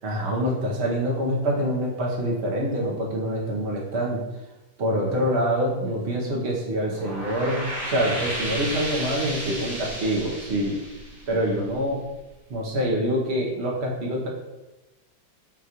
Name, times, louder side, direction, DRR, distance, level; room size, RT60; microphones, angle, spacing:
voice 1, 0.0-4.2 4.8-10.7 11.3-12.0 12.5-14.3, equal, 50° right, -2 dB, 0.8 m, -25 dB
sound 1, 6.8-12.1, right 1 dB, 30° right, 1.1 m, -33 dB
5.7 x 2.4 x 2.9 m, 1.0 s
omnidirectional pair, 1.9 m